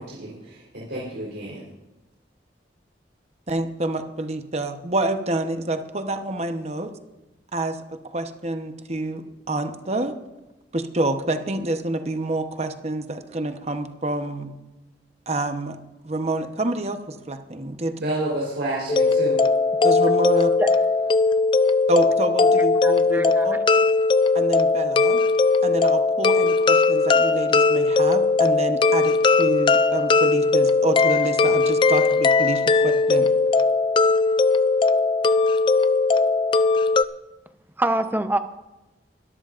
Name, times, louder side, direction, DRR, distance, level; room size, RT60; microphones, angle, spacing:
voice 1, 0.0-1.6 18.0-19.5, right 1 dB, 75° right, -5 dB, 4.0 m, -30 dB
voice 2, 3.5-6.9 7.5-10.1 10.7-14.5 15.3-15.8 16.0-18.0 19.8-20.5 21.9-23.6 24.3-25.2 25.6-33.3, right 1 dB, 35° right, 7 dB, 1.0 m, -27 dB
sound 1, 18.9-37.0, left 3 dB, 25° left, 0.3 m, -19 dB
voice 3, 22.8-23.5 37.8-38.4, right 1 dB, 10° right, 8 dB, 0.7 m, -25 dB
22.0 x 13.5 x 2.6 m, 1.0 s
head